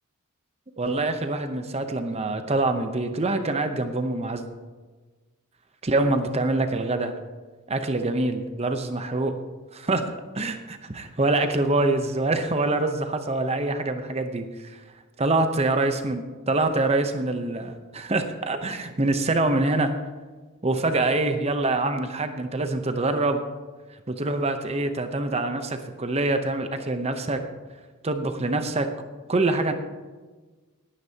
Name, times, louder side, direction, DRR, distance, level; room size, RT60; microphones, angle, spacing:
voice 1, 0.8-4.4 5.8-7.1 7.7-9.4 9.9-10.1 10.3-14.8 15.2-19.9 20.6-23.4 24.1-27.4 28.0-28.9 29.3-29.7, right 2 dB, 30° right, 7 dB, 0.8 m, -25 dB
17.5 x 9.9 x 2.9 m, 1.3 s
head